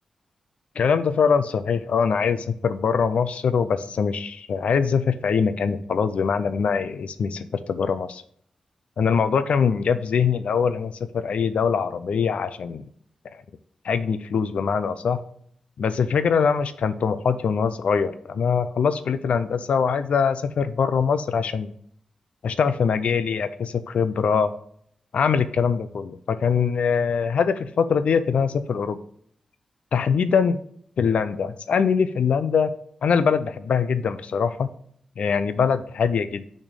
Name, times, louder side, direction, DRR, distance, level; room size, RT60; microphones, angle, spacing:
voice 1, 0.8-8.2 9.0-12.8 13.8-15.2 15.8-21.7 22.4-24.5 25.1-29.0 29.9-30.6 31.0-32.7 33.0-34.7 35.2-36.4, left 6 dB, 80° left, 12 dB, 0.5 m, -23 dB
6.1 x 4.3 x 6.4 m, 0.64 s
cardioid pair, 70°, 2 cm